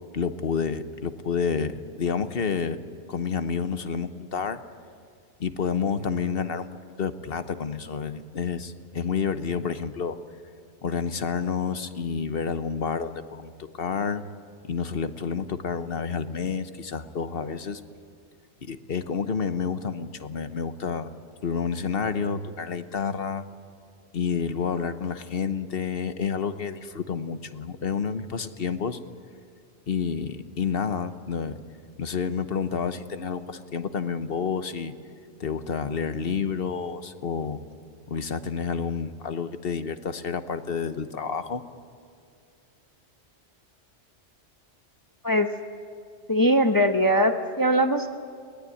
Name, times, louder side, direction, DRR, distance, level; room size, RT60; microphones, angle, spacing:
voice 1, 0.1-2.8 3.1-4.6 5.4-6.7 7.0-10.2 10.8-14.2 14.6-17.8 18.6-21.1 21.4-23.4 24.1-29.0 29.9-31.6 32.0-34.9 35.4-37.6 38.1-41.6, left 6 dB, 55° left, 10 dB, 1.1 m, -29 dB
voice 2, 46.3-48.1, equal, 20° left, 5 dB, 0.9 m, -21 dB
22.5 x 19.0 x 9.9 m, 2.2 s
omnidirectional pair, 1.2 m